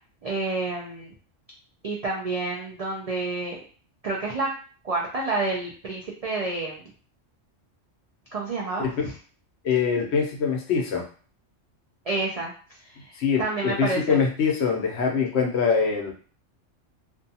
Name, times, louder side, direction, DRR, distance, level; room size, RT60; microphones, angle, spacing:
voice 1, 0.2-1.1 1.8-3.6 4.0-4.5 4.8-6.9 8.3-9.1 12.1-12.5 12.8-13.1 13.4-14.2, right 3 dB, 70° right, -2 dB, 0.3 m, -29 dB
voice 2, 9.6-11.1 13.1-16.1, left 6 dB, 65° left, 1 dB, 0.9 m, -24 dB
2.5 x 2.3 x 2.7 m, 0.40 s
omnidirectional pair, 1.3 m